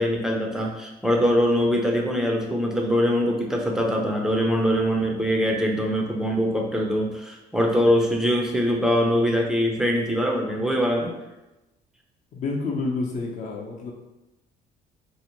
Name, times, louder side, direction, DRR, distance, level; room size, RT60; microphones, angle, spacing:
voice 1, 0.0-11.1, equal, 5° right, 0 dB, 0.5 m, -23 dB
voice 2, 12.3-13.9, left 3 dB, 50° left, 0 dB, 0.6 m, -29 dB
2.6 x 2.1 x 2.9 m, 1.0 s
cardioid pair, 110°, 17 cm